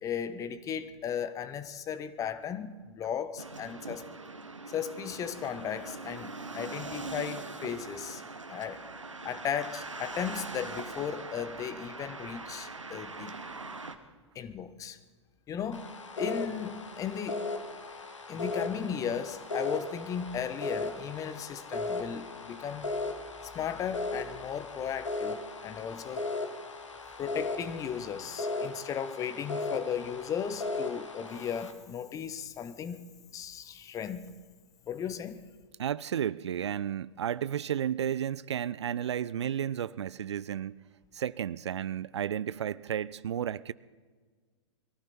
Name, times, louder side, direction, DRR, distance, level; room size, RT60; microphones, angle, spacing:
voice 1, 0.0-4.0 4.7-8.2 8.5-8.9 9.2-13.4 14.3-15.0 15.5-17.4 18.3-22.9 23.5-26.2 27.2-33.0 33.3-34.3 34.9-35.4, left 8 dB, 20° left, 1.0 m, -36 dB
sound 1, 3.4-13.9, right 3 dB, 85° right, 1.4 m, -42 dB
sound 2, 15.7-31.7, left 3 dB, 80° left, 1.7 m, -37 dB
voice 2, 35.8-40.8 41.1-43.7, right 9 dB, 65° right, 0.4 m, -32 dB
22.5 x 14.5 x 4.4 m
figure-of-eight pair, 105°, 16 cm